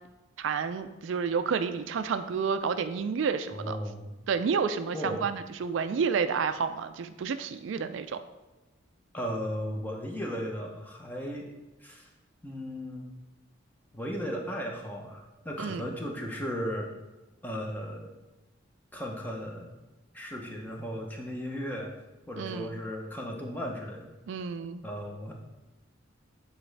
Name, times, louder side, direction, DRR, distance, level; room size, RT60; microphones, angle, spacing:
voice 1, 0.4-3.8 4.3-8.2 15.6-15.8 22.4-22.7 24.3-24.8, right 6 dB, 70° right, 10 dB, 0.3 m, -30 dB
voice 2, 3.5-4.1 4.9-5.2 9.1-11.5 11.8-12.1 12.4-13.1 13.9-16.9 17.4-18.1 18.9-19.8 20.1-21.9 22.3-24.1 24.8-25.3, equal, 10° left, 0 dB, 0.8 m, -36 dB
8.5 x 4.0 x 3.3 m, 1.1 s
head